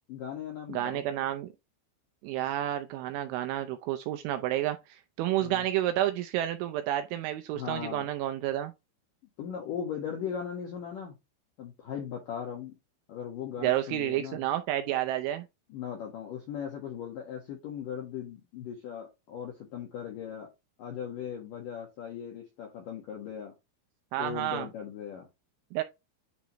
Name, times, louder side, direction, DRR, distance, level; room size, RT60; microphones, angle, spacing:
voice 1, 0.1-1.1 5.4-5.7 7.5-8.1 9.4-11.1 11.6-12.8 13.1-14.4 15.7-20.5 20.8-23.5 24.2-25.3, left 8 dB, 75° left, 2.0 m, -38 dB
voice 2, 0.7-1.5 2.2-8.7 13.6-15.5 24.1-24.7 25.7-25.8, right 13 dB, 80° right, 2.8 m, -30 dB
10.5 x 3.5 x 2.9 m
omnidirectional pair, 6.0 m